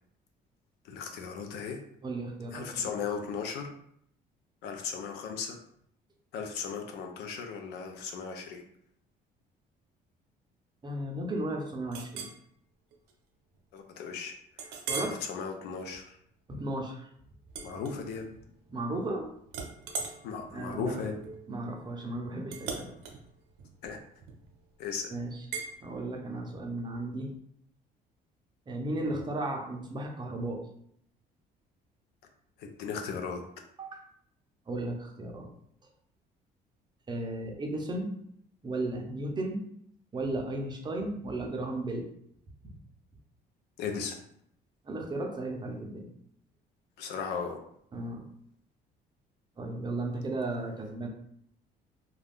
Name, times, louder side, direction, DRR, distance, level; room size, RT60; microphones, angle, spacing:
voice 1, 0.9-1.8 2.5-3.7 4.6-5.6 6.3-8.6 13.7-14.3 14.7-16.2 17.6-18.3 20.2-21.1 23.8-24.0 24.8-25.1 32.6-33.4 43.8-44.2 47.0-47.6, left 6 dB, 80° left, 4 dB, 0.5 m, -36 dB
voice 2, 2.0-2.9 10.8-12.3 14.9-15.1 16.5-17.1 18.7-19.3 20.5-21.1 21.5-22.9 25.1-25.5 25.8-27.3 28.7-30.6 33.8-34.0 34.7-35.5 37.1-38.1 38.6-39.7 40.1-42.1 42.6-42.7 44.8-46.1 47.9-48.2 49.6-51.1, right 2 dB, 25° right, 2 dB, 0.6 m, -35 dB
Chink clink, 11.9-12.4 12.9-13.1 13.6-13.7 14.6-15.2 15.7-16.0 17.5-18.4 18.8-19.2 19.5-24.6 25.5-25.7, right 5 dB, 90° right, 0.5 m, -40 dB
2.4 x 2.2 x 3.4 m, 0.69 s
cardioid pair, 110°, 17 cm